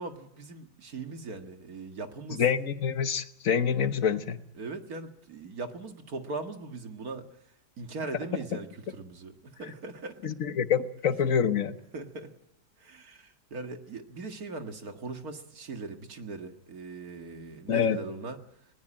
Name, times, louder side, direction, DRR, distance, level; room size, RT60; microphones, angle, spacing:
voice 1, 0.0-2.4 4.6-7.3 7.8-10.2 11.9-12.3 12.8-18.4, right 3 dB, 60° right, 6 dB, 2.3 m, -40 dB
voice 2, 2.4-4.4 10.2-11.8 17.7-18.0, left 7 dB, 55° left, 11 dB, 1.4 m, -26 dB
20.5 x 18.5 x 8.9 m, 0.80 s
omnidirectional pair, 1.8 m